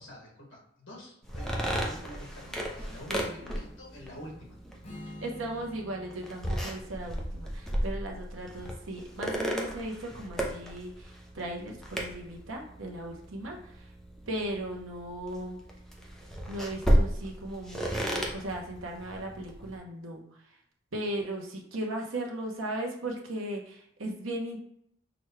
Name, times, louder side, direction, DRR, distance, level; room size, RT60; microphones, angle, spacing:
voice 1, 0.0-4.6, equal, 70° left, -3 dB, 1.8 m, -47 dB
sound 1, 1.2-19.8, equal, ahead, 0.6 m, -34 dB
voice 2, 3.1-3.4 5.2-13.9 14.3-15.6 16.5-20.2 20.9-24.6, right 1 dB, 85° right, 1 dB, 0.9 m, -37 dB
Strum, 4.8-9.0, left 1 dB, 30° left, 0.8 m, -50 dB
6.0 x 2.3 x 3.2 m, 0.72 s
head